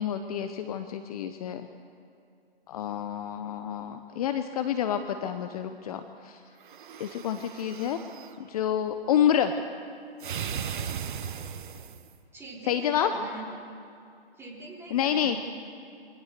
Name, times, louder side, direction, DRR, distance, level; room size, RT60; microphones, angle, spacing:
voice 1, 0.0-1.7 2.7-6.4 7.0-8.0 8.5-9.5 12.7-13.1 14.9-15.4, left 9 dB, 35° left, 8 dB, 0.9 m, -28 dB
sound 1, 6.6-8.4 10.2-12.1, right 8 dB, 55° right, 1.2 m, -37 dB
voice 2, 12.3-13.6 14.4-15.4, right 2 dB, 10° right, -4 dB, 4.0 m, -42 dB
24.0 x 17.5 x 6.8 m, 2.5 s
hypercardioid pair, 140°, 31 cm